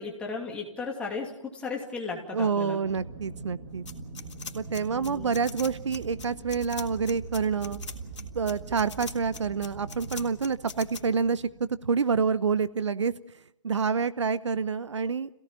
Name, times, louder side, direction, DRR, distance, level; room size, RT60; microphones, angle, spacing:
voice 1, 0.0-2.8 5.0-5.4, left 4 dB, 5° left, 1 dB, 2.8 m, -35 dB
voice 2, 2.3-3.8 4.5-7.8 8.3-13.1 13.6-15.3, right 5 dB, 70° right, 16 dB, 0.9 m, -27 dB
Aircraft, 2.8-12.3, right 4 dB, 35° right, 2.6 m, -43 dB
sound 1, 3.9-11.0, left 5 dB, 70° left, 3.1 m, -41 dB
27.0 x 17.0 x 7.5 m, 0.77 s
hypercardioid pair, 155°, 16 cm